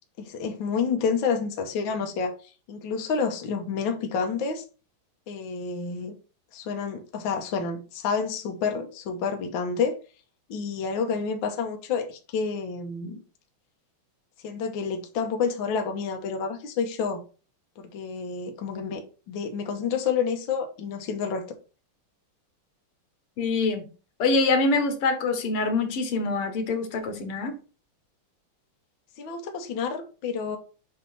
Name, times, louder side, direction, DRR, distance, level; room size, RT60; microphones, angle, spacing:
voice 1, 0.2-4.6 5.3-6.1 6.5-9.9 10.5-13.2 14.4-17.2 17.8-21.4 29.2-30.6, left 5 dB, 65° left, 1.6 m, -29 dB
voice 2, 23.4-23.9 24.2-27.5, left 3 dB, 85° left, 2.1 m, -25 dB
7.7 x 2.8 x 5.4 m
omnidirectional pair, 2.4 m